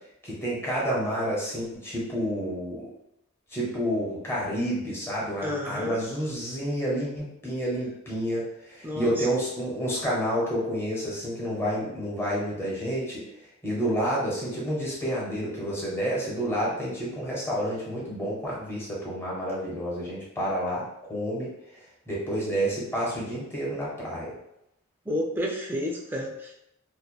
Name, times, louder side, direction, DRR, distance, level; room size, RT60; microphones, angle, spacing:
voice 1, 0.2-2.9 3.5-13.2 13.6-21.5 22.1-24.3, equal, 10° left, -6 dB, 0.8 m, -29 dB
voice 2, 5.4-6.0 8.8-9.3 25.1-26.6, left 1 dB, 10° right, 0 dB, 0.3 m, -31 dB
2.8 x 2.1 x 2.2 m, 0.82 s
head